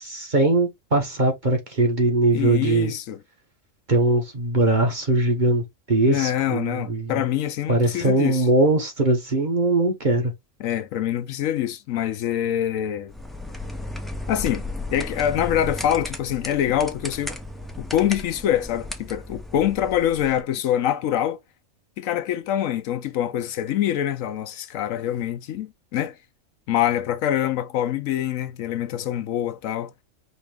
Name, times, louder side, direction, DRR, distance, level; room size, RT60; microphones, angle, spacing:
voice 1, 0.1-2.9 3.9-7.2 7.7-10.3, right 2 dB, 35° right, 1.2 m, -21 dB
voice 2, 2.3-3.2 6.1-8.5 10.6-13.1 14.3-14.6 14.9-17.3 17.8-21.4 22.0-26.2 26.7-29.9, left 11 dB, 75° left, 1.0 m, -25 dB
sound 1, 13.1-20.4, left 2 dB, ahead, 0.4 m, -35 dB
5.2 x 2.9 x 3.4 m
omnidirectional pair, 1.4 m